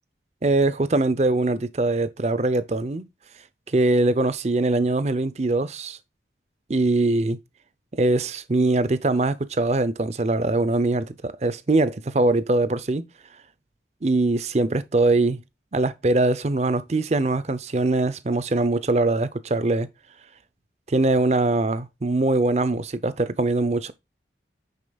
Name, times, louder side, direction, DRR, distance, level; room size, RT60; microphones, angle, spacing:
voice 1, 0.4-3.1 3.7-6.0 6.7-7.4 7.9-13.1 14.0-15.4 15.7-19.9 20.9-23.9, right 2 dB, 35° right, 0.6 m, -22 dB
8.6 x 6.6 x 2.3 m
head